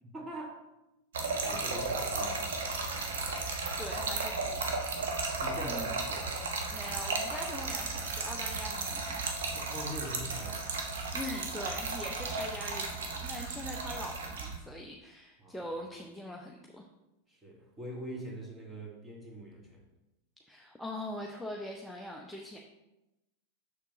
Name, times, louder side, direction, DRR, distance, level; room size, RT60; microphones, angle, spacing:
voice 1, 0.0-0.6 1.3-2.7 4.9-6.4 9.5-10.7 15.4-15.7 17.3-19.8, equal, 15° right, -1 dB, 1.8 m, -43 dB
Trickle dribble / Fill (with liquid), 1.1-14.6, right 3 dB, 60° right, 1.1 m, -34 dB
voice 2, 3.3-4.6 5.6-6.0 6.7-9.2 11.1-16.8 20.5-22.6, left 1 dB, ahead, 0 dB, 0.6 m, -42 dB
6.7 x 6.5 x 3.0 m, 0.94 s
figure-of-eight pair, 90°, 0 cm